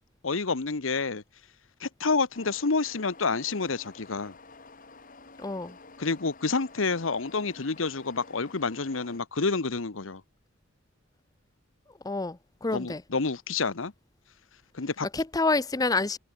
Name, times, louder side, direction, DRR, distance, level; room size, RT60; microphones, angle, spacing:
voice 1, 0.2-1.2 1.8-4.3 6.0-10.2 12.7-13.9 14.7-15.1, left 4 dB, 90° left, 1.1 m, -28 dB
sound 1, 2.3-9.2, left 3 dB, 45° left, 3.4 m, -50 dB
voice 2, 5.4-5.8 12.0-13.0 15.1-16.2, left 3 dB, 20° left, 0.6 m, -28 dB
head